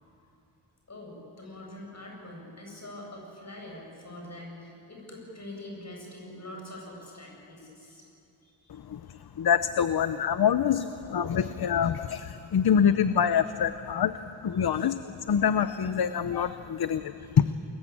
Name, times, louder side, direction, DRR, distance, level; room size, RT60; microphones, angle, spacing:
voice 1, 0.9-8.0 8.4-8.7 9.1-9.2 17.2-17.3, left 1 dB, 35° left, -1 dB, 8.0 m, -44 dB
voice 2, 8.7-14.1 14.4-17.5, left 8 dB, 55° left, 12 dB, 0.7 m, -26 dB
29.0 x 21.5 x 8.7 m, 2.7 s
wide cardioid pair, 135°, 45 cm